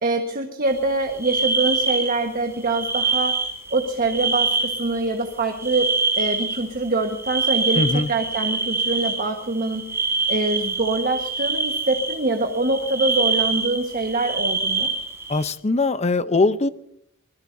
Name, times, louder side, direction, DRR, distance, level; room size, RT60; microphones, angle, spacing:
voice 1, 0.0-3.4 3.7-5.9 6.2-9.8 10.3-14.9, right 2 dB, 45° right, 4 dB, 1.4 m, -24 dB
sound 1, 0.7-0.8 1.1-2.2 2.5-5.2 5.5-15.5, right 3 dB, 15° right, 3.7 m, -25 dB
voice 2, 7.7-8.1 15.3-16.7, left 3 dB, 30° left, 13 dB, 0.7 m, -21 dB
25.5 x 21.0 x 2.7 m, 0.70 s
head